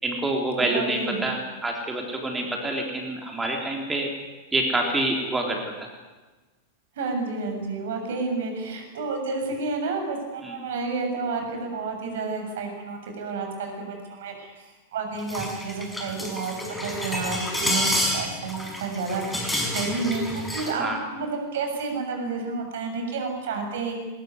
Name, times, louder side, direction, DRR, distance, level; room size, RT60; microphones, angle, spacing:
voice 1, 0.0-4.1 4.5-5.9 10.4-10.6 20.8-21.0, right 1 dB, 10° right, 1 dB, 3.8 m, -27 dB
voice 2, 0.6-1.3 6.9-24.0, right 4 dB, 60° right, 4 dB, 7.2 m, -30 dB
sound 1, 15.2-20.7, left 1 dB, 5° left, 6.0 m, -29 dB
22.5 x 21.0 x 9.7 m, 1.2 s
figure-of-eight pair, 90°, 0 cm